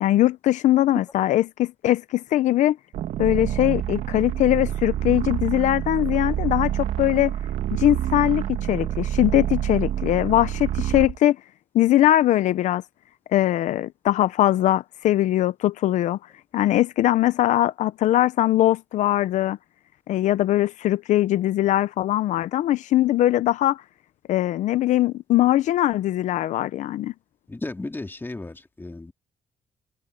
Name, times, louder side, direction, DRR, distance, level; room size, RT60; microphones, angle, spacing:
voice 1, 0.0-2.8 3.2-7.3 7.7-11.4 11.7-12.8 13.3-16.2 16.5-19.6 20.1-23.8 24.3-27.1, left 14 dB, 80° left, 0.6 m, -21 dB
sound 1, 2.9-11.2, right 11 dB, 80° right, 1.3 m, -27 dB
voice 2, 27.6-28.5 28.8-29.1, left 2 dB, 15° left, 2.1 m, -33 dB
cardioid pair, 85°, 12 cm